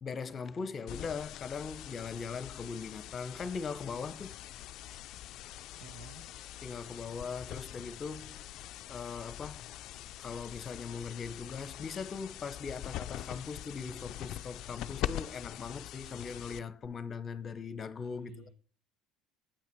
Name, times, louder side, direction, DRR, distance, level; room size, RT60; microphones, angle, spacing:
voice 1, 0.0-4.3 6.6-8.4 8.9-9.7 10.2-18.5, left 5 dB, 40° left, 0.8 m, -40 dB
sound 1, 0.9-16.9, left 13 dB, 65° left, 0.4 m, -43 dB
voice 2, 5.8-6.2 18.1-18.5, right 4 dB, 90° right, 1.2 m, -50 dB
8.7 x 5.9 x 4.6 m
hypercardioid pair, 80°, 0 cm